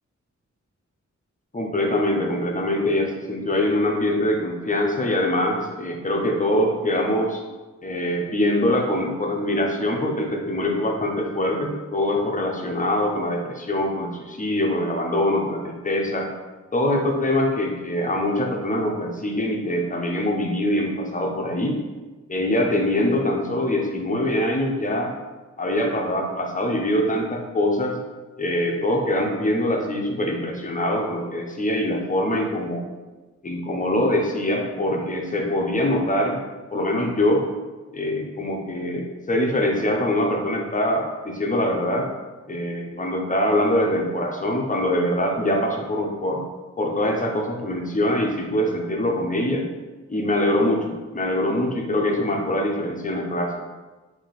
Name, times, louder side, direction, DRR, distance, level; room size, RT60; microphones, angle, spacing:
voice 1, 1.5-7.4 7.8-16.3 16.7-21.8 22.3-25.1 25.6-28.0 28.4-32.8 33.4-36.4 36.7-37.4 37.9-42.1 42.5-46.4 46.8-49.7 50.1-53.7, left 1 dB, 25° left, 1 dB, 0.8 m, -23 dB
3.6 x 2.7 x 4.1 m, 1.2 s
cardioid pair, 60°, 29 cm